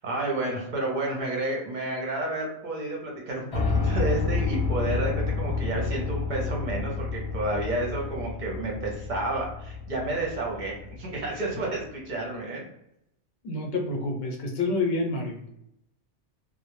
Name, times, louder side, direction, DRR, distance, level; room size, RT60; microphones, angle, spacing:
voice 1, 0.0-12.6, right 2 dB, 50° right, -1 dB, 0.6 m, -30 dB
Piano, 3.5-11.5, left 4 dB, 45° left, 0.5 m, -30 dB
voice 2, 13.4-15.4, left 2 dB, 65° left, 0 dB, 0.9 m, -28 dB
2.1 x 2.0 x 3.0 m, 0.79 s
omnidirectional pair, 1.2 m